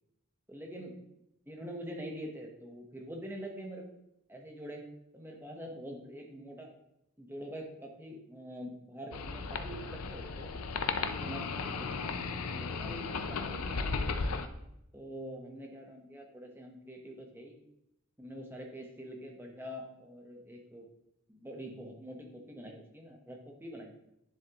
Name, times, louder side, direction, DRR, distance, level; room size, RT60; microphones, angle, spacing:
voice 1, 0.5-1.0 1.5-3.9 4.3-4.8 5.1-6.7 7.2-10.5 11.0-14.4 14.9-17.6 18.2-20.9 21.3-23.9, equal, 10° right, 1 dB, 1.0 m, -45 dB
sound 1, 9.1-14.5, left 4 dB, 85° left, 0.6 m, -35 dB
9.8 x 7.2 x 3.0 m, 0.85 s
head